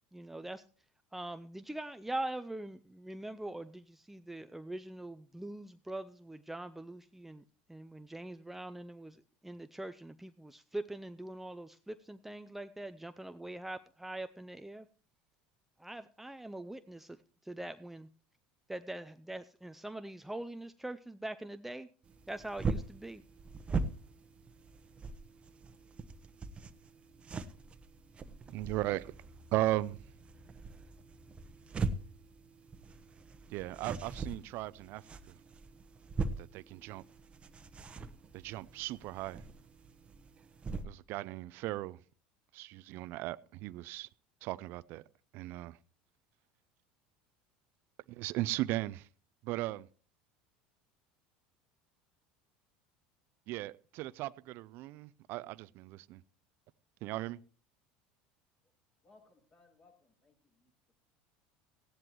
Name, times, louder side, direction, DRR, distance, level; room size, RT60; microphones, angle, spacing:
voice 1, 0.1-0.6 1.1-7.4 7.7-14.9 15.8-17.2 17.4-18.1 18.7-21.9 22.3-23.2, right 1 dB, 5° right, 0.5 m, -43 dB
sound 1, 22.0-40.8, right 4 dB, 25° right, 1.0 m, -41 dB
voice 2, 28.5-29.1 29.5-30.0 33.5-35.0 36.4-37.0 38.3-39.4 40.8-42.0 42.5-44.1 44.4-45.0 45.3-45.8 48.1-49.1 49.4-49.9 53.5-56.2 57.0-57.4, right 17 dB, 60° right, 0.4 m, -37 dB
voice 3, 59.0-60.7, left 3 dB, 40° left, 7.3 m, -65 dB
16.0 x 11.0 x 3.1 m
hypercardioid pair, 90°, 4 cm